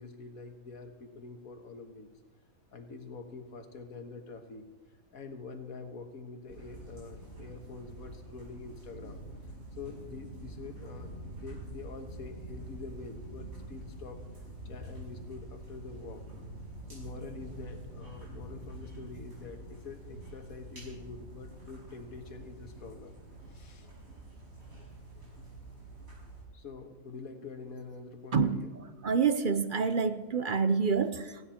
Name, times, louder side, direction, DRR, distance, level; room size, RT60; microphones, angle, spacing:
voice 1, 0.0-2.1 2.7-4.7 5.1-9.2 9.7-14.2 14.7-16.2 16.9-23.2 23.5-23.9 26.5-28.7, left 4 dB, 80° left, 6 dB, 1.8 m, -45 dB
sound 1, 6.5-26.4, right 1 dB, 80° right, 6.1 m, -46 dB
voice 2, 28.3-28.7 29.0-31.5, right 5 dB, 50° right, 11 dB, 0.7 m, -27 dB
18.0 x 16.0 x 4.3 m, 1.3 s
omnidirectional pair, 1.5 m